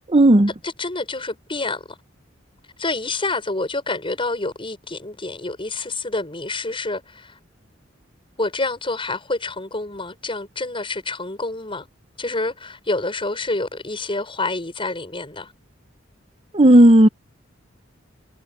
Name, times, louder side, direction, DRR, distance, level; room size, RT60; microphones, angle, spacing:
voice 1, 0.1-0.5 16.5-17.1, right 1 dB, 30° right, 0.9 m, -11 dB
voice 2, 0.6-2.0 2.8-7.4 8.4-11.9 12.2-15.5, left 2 dB, 30° left, 6.5 m, -28 dB
head